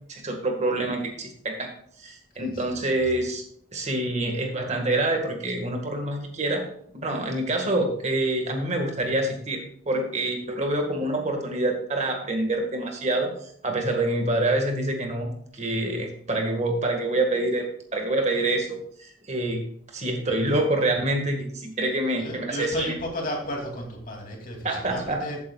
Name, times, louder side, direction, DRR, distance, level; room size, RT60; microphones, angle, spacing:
voice 1, 0.1-1.7 2.0-3.4 3.7-6.6 6.9-17.6 17.9-18.8 19.3-19.6 19.9-22.9 24.6-25.2, right 2 dB, 40° right, 3 dB, 1.7 m, -26 dB
voice 2, 22.1-25.4, left 1 dB, 50° left, 1 dB, 2.6 m, -33 dB
14.5 x 8.6 x 2.3 m, 0.64 s
head